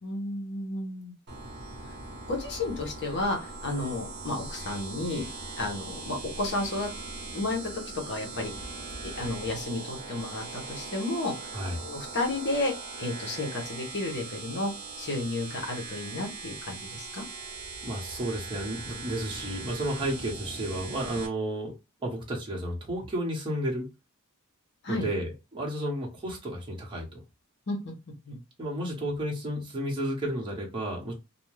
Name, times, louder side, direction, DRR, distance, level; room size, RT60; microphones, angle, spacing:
voice 1, 0.0-1.1 1.8-1.9 2.3-5.3 5.6-6.9 7.3-7.7 8.1-8.5 9.0-11.3 11.8-12.7 13.0-14.7 15.0-17.2 24.8-25.1 27.7-27.9 28.3-28.4, left 2 dB, 50° left, 1 dB, 0.9 m, -32 dB
sound 1, 1.3-21.3, right 3 dB, 50° right, 0.9 m, -40 dB
voice 2, 17.8-21.7 22.0-23.9 24.9-27.2 28.6-31.1, right 1 dB, 20° right, -2 dB, 0.9 m, -32 dB
2.6 x 2.2 x 3.2 m, 0.26 s
head